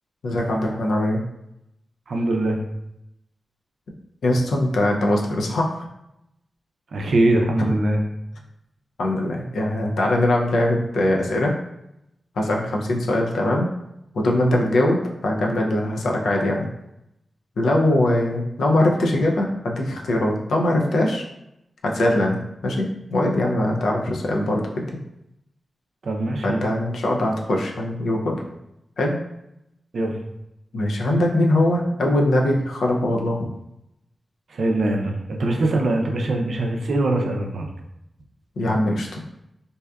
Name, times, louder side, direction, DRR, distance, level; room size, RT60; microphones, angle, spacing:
voice 1, 0.2-1.2 4.2-5.9 7.6-7.7 9.0-11.5 12.4-13.7 14.1-16.7 17.6-21.2 21.8-24.8 26.4-28.4 29.0-29.2 30.7-33.5 38.6-39.2, left 1 dB, 85° left, 0 dB, 0.4 m, -21 dB
voice 2, 2.1-2.6 6.9-8.0 26.0-26.7 29.9-30.1 34.5-37.7, right 2 dB, 75° right, 2 dB, 0.4 m, -22 dB
2.6 x 2.3 x 2.2 m, 0.85 s
cardioid pair, 50°, 0 cm